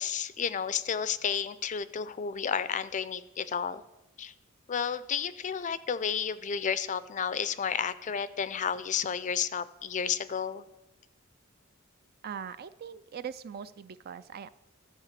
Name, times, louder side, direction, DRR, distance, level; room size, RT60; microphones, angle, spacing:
voice 1, 0.0-3.8 4.2-4.3 4.7-10.7, left 7 dB, 35° left, 15 dB, 0.4 m, -32 dB
voice 2, 12.2-14.5, right 7 dB, 50° right, 14 dB, 0.4 m, -41 dB
12.5 x 4.8 x 7.4 m, 0.99 s
head